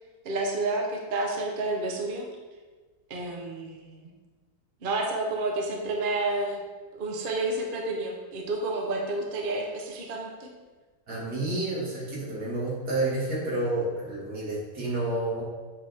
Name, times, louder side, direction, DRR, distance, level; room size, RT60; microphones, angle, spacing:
voice 1, 0.2-2.3 3.1-4.1 4.8-6.6 6.9-10.5, right 2 dB, 45° right, 1 dB, 0.7 m, -30 dB
voice 2, 11.1-15.4, right 2 dB, 65° right, -7 dB, 2.6 m, -30 dB
7.4 x 4.9 x 3.5 m, 1.3 s
omnidirectional pair, 1.9 m